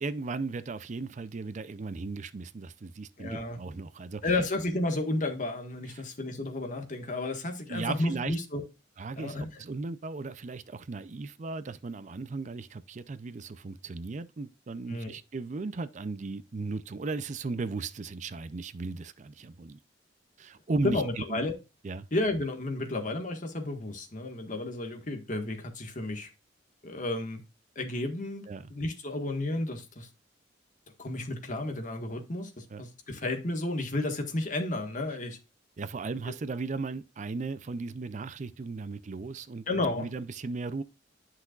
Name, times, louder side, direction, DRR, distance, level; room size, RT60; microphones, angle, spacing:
voice 1, 0.0-4.4 5.9-6.0 7.7-8.4 9.0-19.8 20.4-21.5 21.8-22.1 28.5-28.7 32.7-32.8 35.8-40.8, right 3 dB, 40° right, 0.4 m, -36 dB
voice 2, 3.2-3.6 4.2-8.6 9.2-9.5 14.9-15.1 20.8-21.6 22.1-26.3 26.8-27.4 27.7-28.4 28.7-30.1 31.0-35.4 36.3-36.4 39.7-40.1, left 2 dB, 45° left, 1.5 m, -32 dB
10.5 x 5.9 x 2.4 m
head